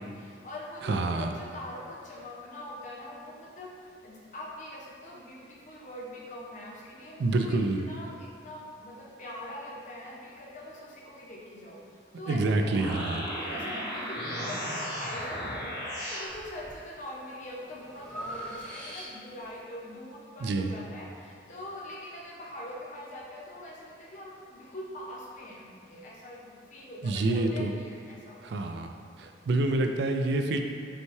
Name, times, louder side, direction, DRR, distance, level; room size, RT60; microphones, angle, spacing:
voice 1, 0.0-7.6 7.8-12.8 13.4-28.6, left 1 dB, 40° left, -4 dB, 0.7 m, -43 dB
voice 2, 0.8-1.3 7.2-7.9 12.3-13.3 20.4-20.7 27.0-27.7 28.4-30.6, right 2 dB, 60° right, 5 dB, 0.3 m, -27 dB
sound 1, 12.5-16.3, equal, 75° left, 1.4 m, -35 dB
Breathing, 16.2-16.7 17.2-19.5, equal, 5° left, 0.7 m, -42 dB
5.5 x 2.2 x 3.1 m, 2.1 s
head